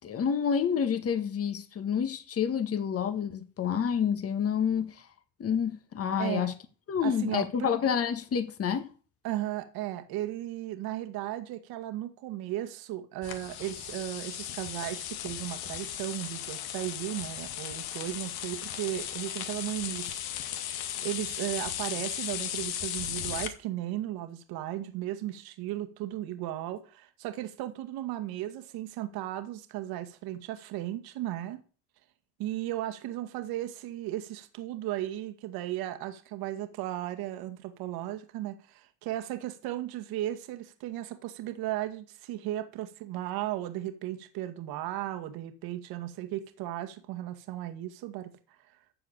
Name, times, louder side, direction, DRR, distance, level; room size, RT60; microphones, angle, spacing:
voice 1, 0.0-5.0 5.4-6.5 6.9-8.9, left 7 dB, 40° left, 1.7 m, -28 dB
voice 2, 6.2-6.5 7.0-7.7 9.2-20.6 21.0-31.6 32.4-48.3, right 14 dB, 75° right, 2.2 m, -35 dB
sound 1, 13.2-23.5, left 11 dB, 75° left, 2.1 m, -36 dB
14.0 x 4.9 x 8.9 m
supercardioid pair, 100°, 37 cm